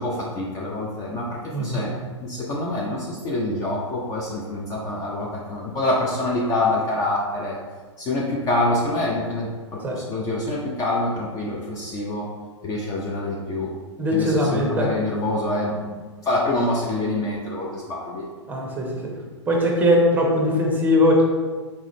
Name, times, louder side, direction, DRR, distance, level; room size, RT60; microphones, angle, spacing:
voice 1, 0.0-1.9 2.2-7.6 8.0-12.3 12.6-13.7 14.1-16.0 16.2-18.3, left 2 dB, 20° left, -3 dB, 0.6 m, -26 dB
voice 2, 1.5-1.9 9.8-10.0 14.0-14.9 18.5-19.1 19.5-21.2, left 1 dB, 10° right, -1 dB, 0.9 m, -20 dB
4.2 x 3.8 x 3.1 m, 1.4 s
figure-of-eight pair, 115°, 16 cm